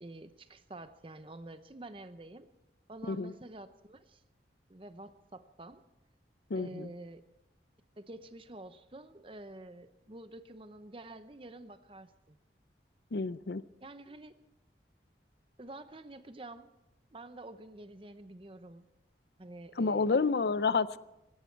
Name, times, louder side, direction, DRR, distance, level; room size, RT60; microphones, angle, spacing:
voice 1, 0.0-2.5 2.9-4.2 4.7-5.8 6.5-7.2 8.0-12.4 13.8-14.3 15.6-16.7 17.1-18.9 19.4-20.2, right 2 dB, 30° right, 11 dB, 0.8 m, -48 dB
voice 2, 3.0-3.3 6.5-6.9 13.1-13.6 19.8-21.0, left 4 dB, 65° left, 16 dB, 0.5 m, -29 dB
18.5 x 16.5 x 4.6 m, 0.91 s
head